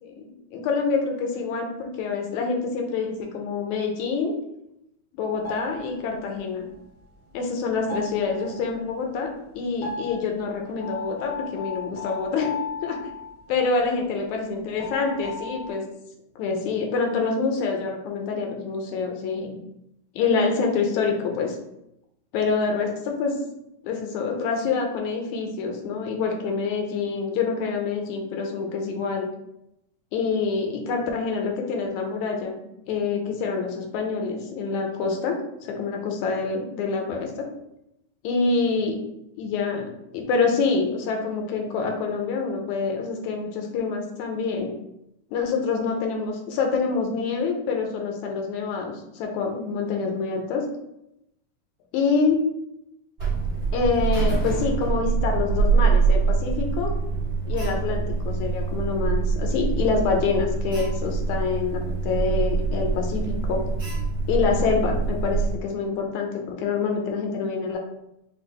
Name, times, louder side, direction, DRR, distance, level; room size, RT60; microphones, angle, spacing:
voice 1, 0.0-4.3 5.1-6.7 7.3-12.5 12.8-13.0 13.5-15.8 16.4-19.6 20.2-21.6 22.3-23.4 23.8-29.3 30.1-32.6 32.9-37.5 38.2-39.0 39.4-44.7 45.3-50.6 51.9-52.4 53.7-56.9 57.5-63.6 64.3-67.8, left 4 dB, 85° left, 2 dB, 2.1 m, -26 dB
sound 1, 5.4-6.4 6.7-7.6 7.9-9.0 9.8-14.1 14.4-14.5 14.8-15.7, left 4 dB, 65° left, 1.4 m, -36 dB
Alarm, 53.2-65.5, right 4 dB, 35° right, 0.9 m, -24 dB
5.9 x 2.4 x 3.3 m, 0.82 s
omnidirectional pair, 3.4 m